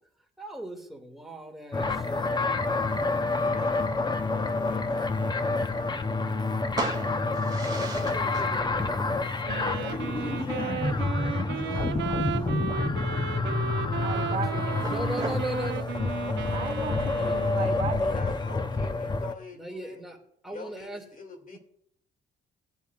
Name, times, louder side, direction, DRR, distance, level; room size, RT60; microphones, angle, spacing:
voice 1, 0.4-2.6 7.6-9.4 13.9-14.4 14.9-16.6 17.0-18.3 19.5-20.2 20.4-21.0, right 1 dB, ahead, 1 dB, 2.3 m, -40 dB
sound 1, 1.7-19.3, left 3 dB, 20° left, 0.7 m, -28 dB
voice 2, 3.4-6.1 9.6-12.8 18.1-20.0 20.5-21.6, left 4 dB, 45° left, 5 dB, 2.3 m, -44 dB
sound 2, 5.3-15.4, right 3 dB, 20° right, 2.5 m, -41 dB
Wind instrument woodwind instrument, 9.4-17.9, right 10 dB, 65° right, 0.8 m, -35 dB
voice 3, 14.0-14.8 16.5-18.2, right 5 dB, 35° right, 1 dB, 3.1 m, -35 dB
18.0 x 8.2 x 2.4 m, 0.68 s
cardioid pair, 90°, 20 cm